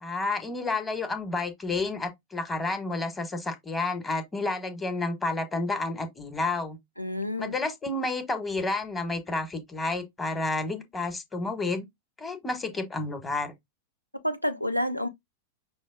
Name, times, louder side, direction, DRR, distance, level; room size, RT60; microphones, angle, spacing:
voice 1, 0.0-6.8 7.4-11.8 12.2-13.5, left 3 dB, 15° left, 1.1 m, -30 dB
voice 2, 7.0-7.5 14.2-15.1, left 1 dB, 90° left, 0.6 m, -29 dB
5.9 x 2.0 x 3.8 m
figure-of-eight pair, 90°, 0 cm